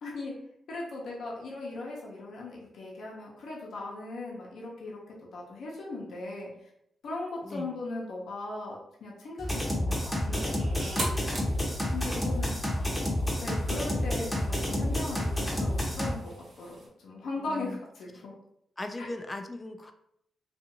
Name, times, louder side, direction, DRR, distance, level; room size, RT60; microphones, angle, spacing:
voice 1, 0.0-0.3 0.7-5.0 5.3-6.5 7.0-11.1 11.9-12.7 13.4-18.3 19.0-19.1, left 2 dB, 75° left, -3 dB, 0.7 m, -38 dB
sound 1, 9.4-16.1, left 1 dB, 5° left, 0.8 m, -29 dB
sound 2, 10.3-16.9, right 1 dB, 55° right, 0.9 m, -42 dB
voice 2, 12.8-13.2 17.4-17.8 18.2-18.3 18.8-19.9, left 2 dB, 20° left, 7 dB, 0.4 m, -39 dB
2.6 x 2.4 x 2.8 m, 0.75 s
cardioid pair, 75°, 0 cm